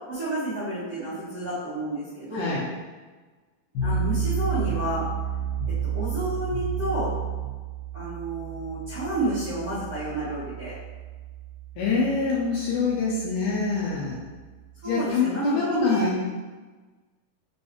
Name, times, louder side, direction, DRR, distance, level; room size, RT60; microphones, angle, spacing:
voice 1, 0.1-2.5 3.8-5.1 5.9-7.1 7.9-10.8 14.8-16.1, right 1 dB, 65° right, -11 dB, 1.6 m, -30 dB
voice 2, 2.3-2.7 11.8-14.2 14.8-16.3, left 4 dB, 85° left, -5 dB, 1.8 m, -25 dB
sound 1, 3.7-14.9, right 6 dB, 65° left, 2.3 m, -31 dB
5.5 x 3.1 x 2.9 m, 1.3 s
omnidirectional pair, 4.3 m